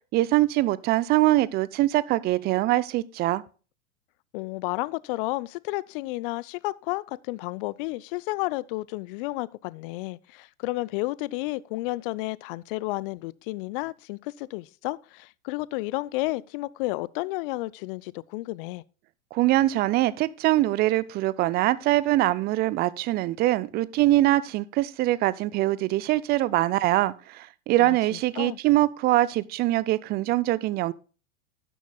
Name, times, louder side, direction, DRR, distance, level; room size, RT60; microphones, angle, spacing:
voice 1, 0.1-3.4 19.3-30.9, right 16 dB, 25° right, 0.4 m, -23 dB
voice 2, 4.3-18.8 27.8-28.6, left 20 dB, 45° left, 0.5 m, -32 dB
12.5 x 10.0 x 2.3 m
figure-of-eight pair, 90°, 40 cm